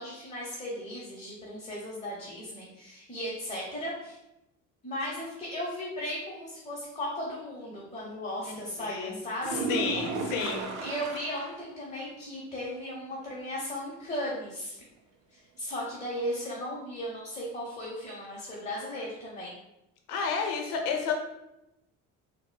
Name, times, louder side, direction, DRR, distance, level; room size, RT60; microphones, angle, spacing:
voice 1, 0.0-4.2 4.8-9.7 10.2-14.8 15.3-19.5, equal, 20° left, -5 dB, 0.8 m, -36 dB
voice 2, 8.8-9.1 9.7-10.6 20.1-21.2, left 5 dB, 75° left, 3 dB, 0.7 m, -30 dB
sound 1, 9.4-11.7 12.0-12.1 12.5-12.6 16.4-16.5, right 4 dB, 70° right, 0.6 m, -34 dB
3.9 x 2.1 x 2.2 m, 0.90 s
supercardioid pair, 70°, 33 cm